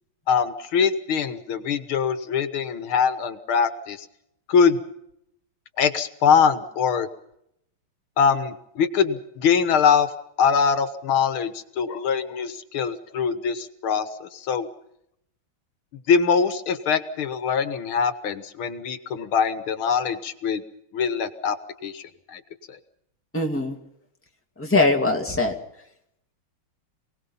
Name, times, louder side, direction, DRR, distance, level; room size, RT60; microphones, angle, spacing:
voice 1, 0.3-4.1 4.5-4.8 5.8-7.1 8.2-10.1 10.4-14.7 16.1-20.6 20.9-21.6 21.8-22.4 22.7-22.8, left 6 dB, 80° left, 10 dB, 2.1 m, -23 dB
voice 2, 23.3-23.8 24.6-25.6, left 2 dB, 5° left, 1 dB, 2.3 m, -21 dB
28.0 x 19.0 x 5.5 m, 0.77 s
omnidirectional pair, 2.3 m